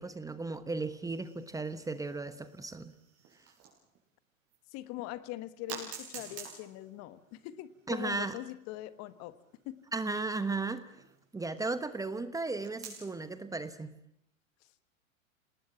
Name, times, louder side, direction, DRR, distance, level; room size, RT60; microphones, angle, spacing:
voice 1, 0.0-2.9 7.9-8.4 9.9-11.0 11.3-13.9, right 3 dB, 10° right, 12 dB, 1.1 m, -35 dB
sound 1, 1.1-4.0 4.5-4.6 5.7-11.7 12.6-13.3, right 6 dB, 35° right, 6.6 m, -50 dB
voice 2, 4.7-9.4 9.6-9.8, left 15 dB, 40° left, 14 dB, 1.4 m, -42 dB
27.0 x 19.5 x 7.2 m, 0.74 s
hypercardioid pair, 100°, 40 cm